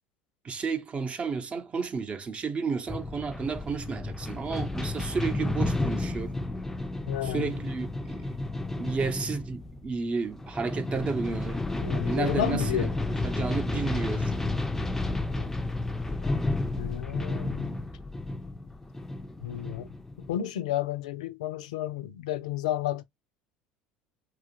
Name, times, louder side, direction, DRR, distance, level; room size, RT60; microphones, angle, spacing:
voice 1, 0.4-6.3 7.2-8.4 8.8-11.6 12.0-12.9 13.2-14.3, right 5 dB, 35° right, 0.7 m, -32 dB
sound 1, 2.9-20.4, left 2 dB, 10° left, 0.4 m, -32 dB
voice 2, 7.1-7.5 11.8-12.9 15.3-15.5 16.2-16.3 16.8-17.8 19.4-19.9 20.3-23.0, left 11 dB, 85° left, 0.4 m, -32 dB
2.8 x 2.4 x 2.9 m
hypercardioid pair, 80°, 4 cm